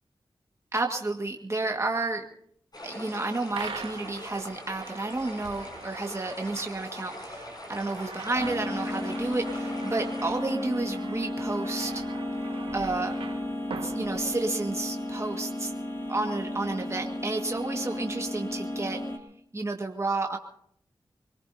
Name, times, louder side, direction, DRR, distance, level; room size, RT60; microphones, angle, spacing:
voice 1, 0.7-2.2 2.8-12.0 12.7-13.2 13.8-15.7 16.1-19.0 19.5-20.4, right 2 dB, 30° right, 2 dB, 1.8 m, -31 dB
sound 1, 2.7-10.4, left 1 dB, 45° left, 7.1 m, -43 dB
sound 2, 3.5-14.8, right 4 dB, 90° right, 1.5 m, -43 dB
sound 3, 8.4-19.2, left 1 dB, 30° left, 2.6 m, -34 dB
25.0 x 19.0 x 2.8 m, 0.68 s
cardioid pair, 45°, 9 cm